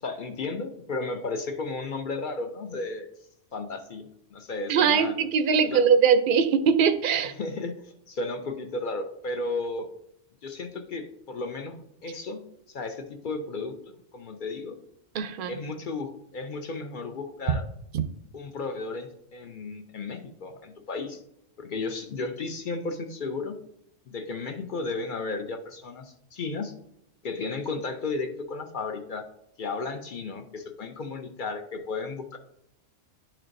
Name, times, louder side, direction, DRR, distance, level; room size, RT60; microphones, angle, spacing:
voice 1, 0.0-3.1 3.5-5.2 5.6-5.8 7.4-9.9 10.4-14.8 15.5-17.6 18.3-21.2 21.6-23.6 24.1-26.7 27.2-29.2 29.6-32.4, left 3 dB, 55° left, 6 dB, 0.6 m, -34 dB
voice 2, 4.7-7.3 15.1-15.5, right 6 dB, 55° right, 9 dB, 0.6 m, -21 dB
11.0 x 4.5 x 2.6 m, 0.77 s
omnidirectional pair, 1.3 m